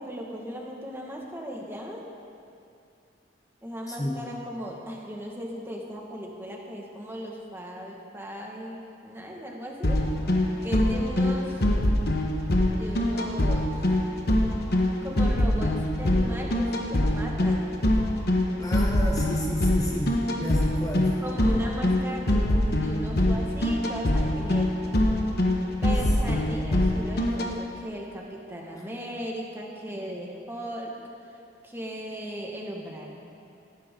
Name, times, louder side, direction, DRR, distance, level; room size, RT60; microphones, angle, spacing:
voice 1, 0.0-2.0 3.6-10.0 10.6-11.6 12.7-13.8 15.0-17.7 21.2-25.0 25.8-30.9 31.3-31.4 31.6-33.1, equal, 15° right, -1 dB, 1.8 m, -37 dB
voice 2, 3.9-4.2 18.6-21.2, equal, 20° left, -1 dB, 0.9 m, -31 dB
sound 1, 9.8-27.5, left 1 dB, 60° left, 1.3 m, -24 dB
18.0 x 14.0 x 3.9 m, 2.5 s
head